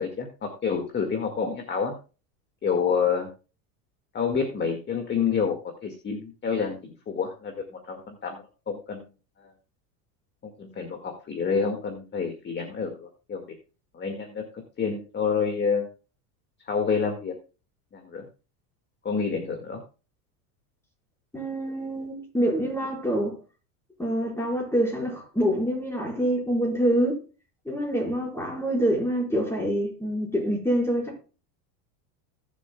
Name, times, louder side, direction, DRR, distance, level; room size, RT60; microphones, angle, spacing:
voice 1, 0.0-1.9 2.6-3.3 4.1-5.5 5.8-7.5 7.9-9.1 9.4-9.5 10.4-13.4 13.9-14.4 14.8-15.9 16.7-17.3 17.9-18.2 19.0-19.8, left 6 dB, 25° left, 1.9 m, -28 dB
voice 2, 21.3-23.3 24.0-27.2 27.6-31.2, equal, 5° left, 4.9 m, -26 dB
19.5 x 7.4 x 2.3 m
supercardioid pair, 130°, 44 cm